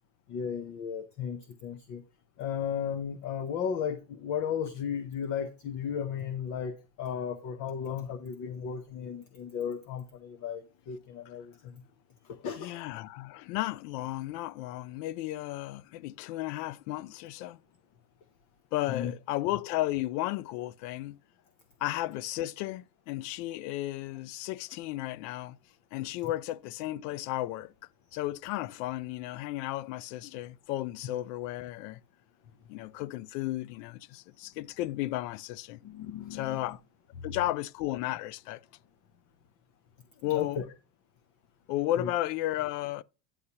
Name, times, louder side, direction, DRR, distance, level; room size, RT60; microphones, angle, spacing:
voice 1, 0.3-2.0 2.4-11.8 12.2-12.8 18.9-19.1 35.8-36.6 40.3-40.6 42.0-42.1, left 7 dB, 40° left, 0.7 m, -35 dB
voice 2, 12.6-17.6 18.7-21.2 21.8-25.6 25.9-27.7 28.1-32.0 32.7-35.8 36.3-36.8 37.2-38.6 40.2-40.7 41.7-43.0, left 15 dB, 80° left, 0.6 m, -34 dB
9.9 x 8.1 x 2.8 m
cardioid pair, 165°, 47 cm